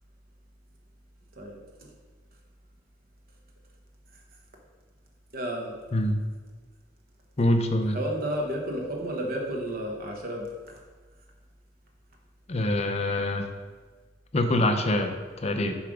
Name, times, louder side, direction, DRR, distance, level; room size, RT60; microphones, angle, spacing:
voice 1, 1.4-1.9 5.3-5.8 7.9-10.8, right 1 dB, 50° right, 0 dB, 1.1 m, -32 dB
voice 2, 7.4-8.0 12.5-13.5 14.3-15.8, left 1 dB, 35° left, 5 dB, 0.5 m, -25 dB
7.2 x 3.4 x 4.9 m, 1.4 s
head